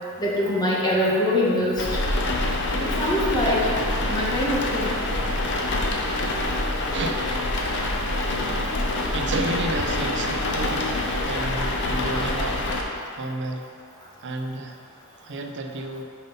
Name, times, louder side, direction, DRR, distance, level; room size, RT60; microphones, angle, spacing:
voice 1, 0.2-1.8 2.8-3.6 4.1-5.0, left 1 dB, 20° left, -6 dB, 1.4 m, -23 dB
sound 1, 1.8-12.8, left 2 dB, 55° left, 0.8 m, -26 dB
voice 2, 6.9-7.6 8.5-13.7 14.2-14.8 15.2-16.0, right 2 dB, 55° right, 4 dB, 0.6 m, -32 dB
5.7 x 5.4 x 5.5 m, 2.2 s
head